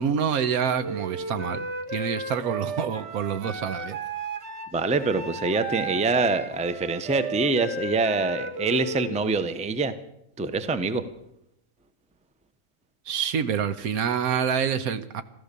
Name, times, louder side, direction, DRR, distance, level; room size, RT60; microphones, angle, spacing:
voice 1, 0.0-4.0 13.1-15.2, right 7 dB, 80° right, 1.3 m, -27 dB
Wind instrument woodwind instrument, 0.8-9.2, right 2 dB, 50° right, 1.6 m, -34 dB
voice 2, 4.7-10.0 10.4-11.1, right 3 dB, 10° right, 0.5 m, -25 dB
14.5 x 13.0 x 6.8 m
omnidirectional pair, 1.5 m